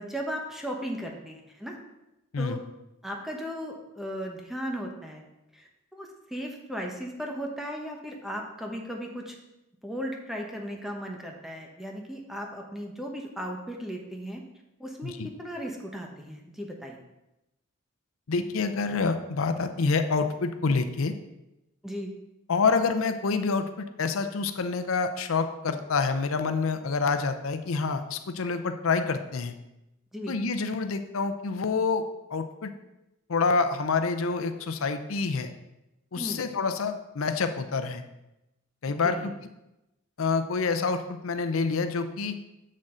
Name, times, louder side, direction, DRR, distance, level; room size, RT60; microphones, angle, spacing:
voice 1, 0.0-1.8 2.4-2.6 3.0-5.2 5.5-9.4 9.8-14.4 14.8-17.0 21.8-22.1 30.1-30.4 36.2-36.4 38.9-39.3, equal, ahead, 1 dB, 0.9 m, -36 dB
voice 2, 18.3-21.1 22.5-29.5 30.3-32.0 32.3-32.7 33.3-35.5 36.1-38.0 38.8-39.3 40.2-42.4, left 4 dB, 80° left, 8 dB, 0.6 m, -27 dB
7.5 x 6.4 x 3.8 m, 0.93 s
head